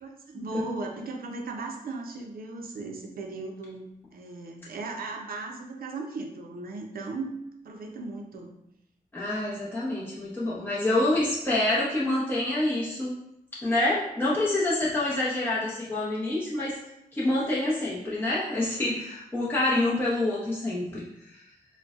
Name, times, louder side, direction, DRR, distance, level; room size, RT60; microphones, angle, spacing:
voice 1, 0.0-7.4 7.6-8.5, right 3 dB, 80° right, 2 dB, 0.5 m, -37 dB
voice 2, 9.1-13.1 13.6-16.8 17.1-21.0 21.3-21.4, left 1 dB, 15° left, -8 dB, 0.7 m, -27 dB
3.9 x 2.1 x 2.3 m, 0.83 s
wide cardioid pair, 105°, 15 cm